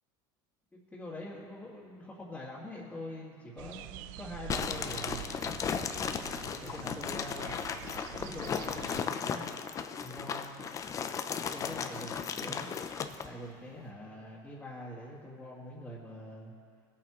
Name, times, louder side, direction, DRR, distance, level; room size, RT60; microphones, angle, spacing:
voice 1, 0.7-5.3 6.6-7.5 8.2-9.5 10.0-10.8 11.5-12.7 13.2-16.5, left 1 dB, 10° left, -8 dB, 2.1 m, -44 dB
sound 1, 3.6-9.0, right 15 dB, 70° right, 0.4 m, -46 dB
sound 2, 4.5-13.3, left 7 dB, 30° left, 0.6 m, -36 dB
20.5 x 8.7 x 3.1 m, 2.3 s
supercardioid pair, 125°, 11 cm